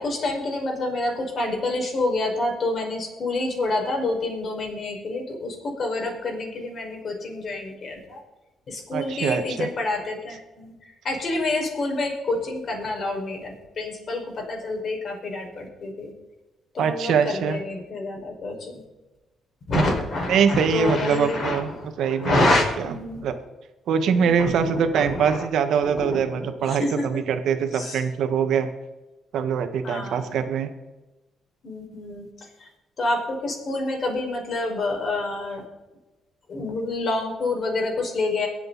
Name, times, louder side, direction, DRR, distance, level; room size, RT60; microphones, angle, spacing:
voice 1, 0.0-8.2 8.7-10.7 11.0-16.1 16.7-18.8 19.7-23.3 24.2-25.5 25.8-27.0 27.7-28.0 29.8-30.4 31.6-32.3 32.6-32.7 33.0-35.6 36.5-38.5, left 2 dB, 50° left, 1 dB, 5.2 m, -28 dB
voice 2, 8.9-9.7 16.8-17.6 19.7-19.8 20.3-22.6 23.2-23.3 23.9-28.7 29.3-30.7, right 7 dB, 75° right, 8 dB, 1.5 m, -23 dB
23.5 x 8.1 x 4.2 m, 1.1 s
cardioid pair, 90°, 0 cm